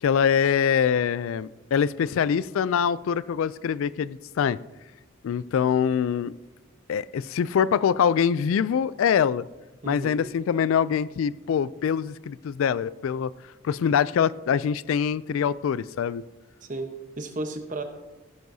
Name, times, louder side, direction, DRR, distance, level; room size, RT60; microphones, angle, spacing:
voice 1, 0.0-4.6 5.2-6.3 6.9-9.5 9.9-13.3 13.6-16.2, left 7 dB, 75° left, 18 dB, 0.3 m, -24 dB
voice 2, 9.8-10.2 16.6-17.8, right 2 dB, 35° right, 6 dB, 1.0 m, -34 dB
15.5 x 11.0 x 2.7 m, 1.1 s
head